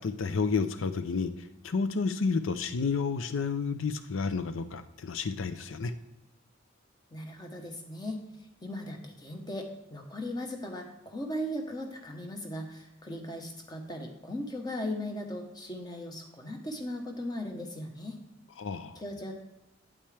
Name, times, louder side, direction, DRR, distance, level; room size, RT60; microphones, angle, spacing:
voice 1, 0.0-5.9 18.6-19.0, left 4 dB, 85° left, 11 dB, 0.5 m, -31 dB
voice 2, 7.1-8.2 8.6-18.2 18.9-19.3, left 1 dB, 20° left, 3 dB, 1.1 m, -38 dB
8.8 x 8.7 x 3.3 m, 0.92 s
head